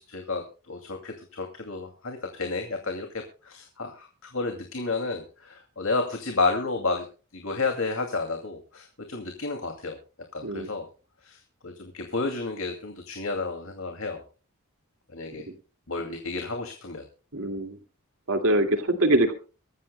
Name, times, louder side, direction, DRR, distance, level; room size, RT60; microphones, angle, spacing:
voice 1, 0.0-7.0 7.3-10.0 10.3-10.9 11.2-14.2 15.1-15.5 15.9-17.0, left 3 dB, 65° left, 4 dB, 2.4 m, -31 dB
voice 2, 17.3-17.8 18.3-19.3, right 1 dB, 75° right, 5 dB, 2.2 m, -23 dB
24.5 x 14.0 x 2.2 m, 0.35 s
head